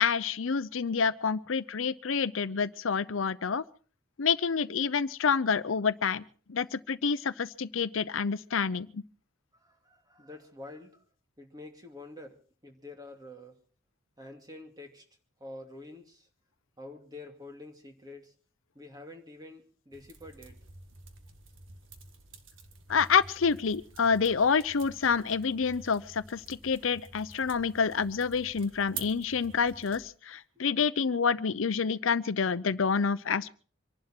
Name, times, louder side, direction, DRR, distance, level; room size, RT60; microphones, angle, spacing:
voice 1, 0.0-3.6 4.2-6.2 6.5-9.0 22.9-33.5, left 5 dB, 80° left, 15 dB, 0.7 m, -28 dB
voice 2, 9.5-11.0 11.4-13.6 14.2-15.0 15.4-16.3 16.8-18.3 18.7-20.6, left 2 dB, 20° right, 4 dB, 2.6 m, -47 dB
sound 1, 19.9-30.0, right 5 dB, 75° right, 1.8 m, -49 dB
25.5 x 11.5 x 4.5 m, 0.41 s
head